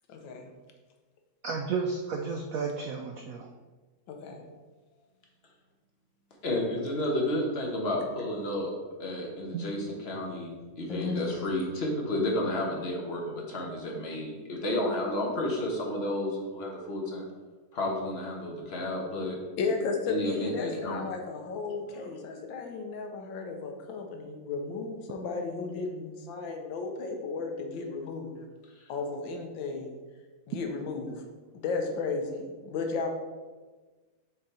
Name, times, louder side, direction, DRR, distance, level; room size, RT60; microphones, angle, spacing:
voice 1, 0.1-0.5 4.1-4.4 10.9-11.4 19.6-28.4 28.9-30.0 30.5-31.2 31.5-33.1, left 4 dB, 85° left, 3 dB, 1.6 m, -34 dB
voice 2, 1.4-3.5 9.5-9.6, right 5 dB, 75° right, 3 dB, 0.7 m, -32 dB
voice 3, 6.4-8.7 9.0-17.2 17.7-19.4 20.1-21.0, left 1 dB, 40° left, -1 dB, 1.2 m, -31 dB
6.6 x 3.8 x 4.2 m, 1.3 s
omnidirectional pair, 2.0 m